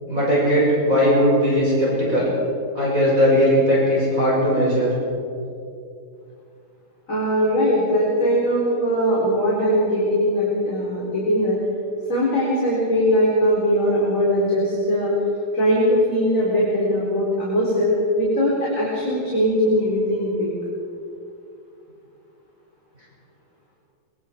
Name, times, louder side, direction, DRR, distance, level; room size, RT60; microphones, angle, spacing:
voice 1, 0.1-2.3 2.7-4.9, equal, 35° right, -6 dB, 6.6 m, -18 dB
voice 2, 7.1-11.6 12.1-15.1 15.5-20.5, equal, 35° left, -6 dB, 4.8 m, -20 dB
24.5 x 24.0 x 4.7 m, 2.6 s
omnidirectional pair, 2.4 m